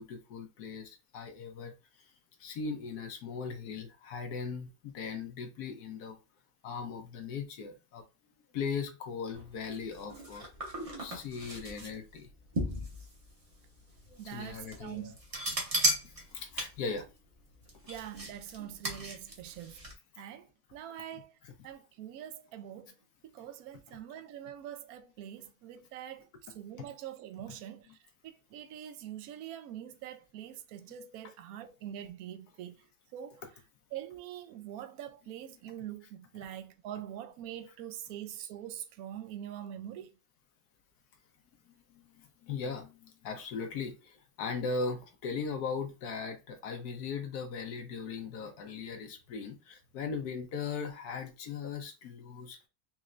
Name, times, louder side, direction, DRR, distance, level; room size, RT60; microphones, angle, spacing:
voice 1, 0.0-1.7 2.4-6.2 6.6-8.0 8.5-10.5 11.0-12.3 14.2-15.1 16.0-17.1 41.9-42.0 42.4-52.7, left 5 dB, 85° left, 1.3 m, -38 dB
sound 1, 9.3-19.9, right 1 dB, 25° right, 0.9 m, -37 dB
voice 2, 14.2-15.1 17.9-19.9 20.2-21.4 21.6-23.0 23.2-33.4 33.9-40.2, right 11 dB, 75° right, 1.0 m, -44 dB
4.2 x 3.1 x 2.4 m
omnidirectional pair, 1.6 m